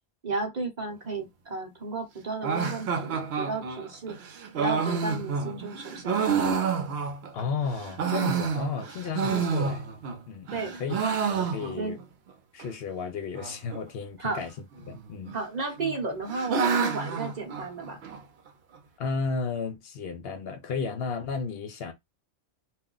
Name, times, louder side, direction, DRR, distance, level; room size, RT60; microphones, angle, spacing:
voice 1, 0.2-4.2 4.6-6.2 9.3-9.5 10.5-10.8 11.8-12.0 14.2-14.4 15.3-18.0, right 3 dB, 45° right, 0.8 m, -33 dB
sound 1, 2.4-7.4 7.8-10.2 10.5-12.0 12.3-12.4 12.6-12.7 13.3-13.8 14.8-15.4 15.8-18.2, right 6 dB, 70° right, 0.9 m, -29 dB
voice 2, 7.3-9.8 10.3-11.0 11.3-12.0 12.5-15.4 19.0-21.9, left 5 dB, 70° left, 0.8 m, -33 dB
2.4 x 2.1 x 3.7 m
omnidirectional pair, 1.1 m